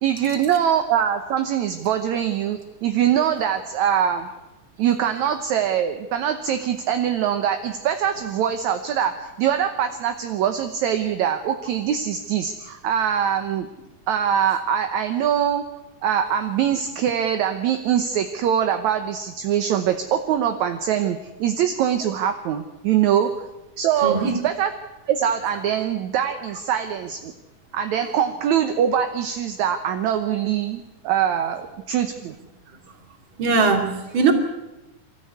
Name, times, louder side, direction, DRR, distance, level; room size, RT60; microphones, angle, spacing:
voice 1, 0.0-4.3 4.8-13.7 14.1-15.6 16.0-23.3 23.8-24.7 25.1-27.3 27.7-32.4, right 9 dB, 70° right, 7 dB, 2.2 m, -23 dB
voice 2, 24.0-24.4 33.4-34.3, right 4 dB, 40° right, 4 dB, 3.1 m, -20 dB
25.0 x 14.0 x 9.4 m, 1.0 s
omnidirectional pair, 3.8 m